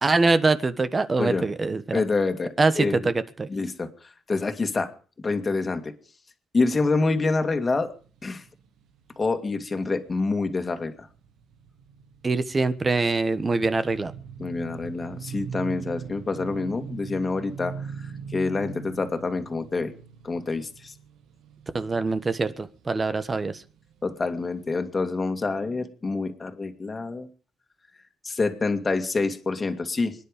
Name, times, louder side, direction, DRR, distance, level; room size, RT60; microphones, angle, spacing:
voice 1, 0.0-2.0 2.6-3.5 12.2-14.1 21.7-23.6, right 3 dB, 30° right, 13 dB, 1.3 m, -24 dB
voice 2, 1.9-3.1 3.5-4.9 5.2-5.9 6.5-7.9 8.2-8.4 9.2-11.1 14.4-19.9 20.2-20.9 24.0-27.3 28.2-30.3, left 3 dB, 30° left, 6 dB, 2.2 m, -27 dB
sound 1, 6.8-24.1 24.5-24.6, right 7 dB, 85° right, 1.5 m, -42 dB
25.5 x 10.0 x 5.3 m, 0.41 s
cardioid pair, 90°, 0 cm